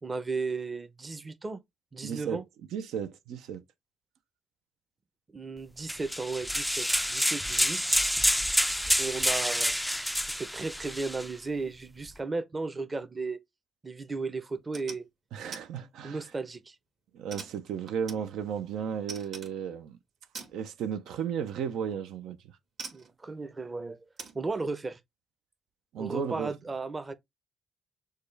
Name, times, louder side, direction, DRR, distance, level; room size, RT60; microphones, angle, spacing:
voice 1, 0.0-1.6 1.9-2.4 5.3-7.8 9.0-9.8 10.3-13.4 13.8-15.1 16.0-16.7 22.9-24.0 24.3-25.0 26.0-27.1, right 3 dB, 25° right, 0.7 m, -35 dB
voice 2, 2.0-2.4 2.7-3.6 15.3-16.2 17.1-20.0 20.5-22.4 25.9-26.5, right 8 dB, 85° right, 0.5 m, -34 dB
sound 1, 5.9-11.3, equal, ahead, 0.3 m, -28 dB
sound 2, 14.5-15.0 15.5-15.7 16.1-16.6 17.3-18.7 19.1-19.6 20.3-20.6 21.9-22.0 22.8-23.1 24.2-24.4, right 5 dB, 55° right, 1.8 m, -43 dB
6.5 x 2.3 x 3.3 m
cardioid pair, 90°, 0 cm